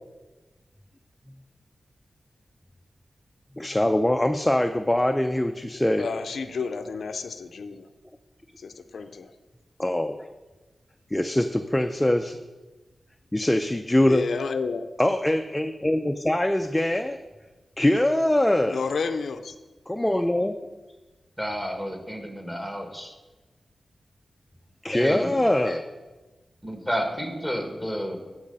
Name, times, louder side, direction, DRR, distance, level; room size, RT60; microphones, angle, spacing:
voice 1, 3.6-6.1 9.8-10.2 11.1-12.4 13.3-14.3 15.0-17.2 17.8-18.8 19.9-20.6 24.8-25.8, left 1 dB, 15° left, 6 dB, 0.4 m, -23 dB
voice 2, 6.0-7.9 8.6-9.3 14.1-14.9 18.7-19.6, left 5 dB, 85° left, 9 dB, 0.5 m, -31 dB
voice 3, 21.4-23.1 24.9-25.4 26.6-28.2, equal, 10° right, 4 dB, 1.6 m, -30 dB
12.5 x 4.8 x 5.4 m, 1.2 s
wide cardioid pair, 80°, 0 cm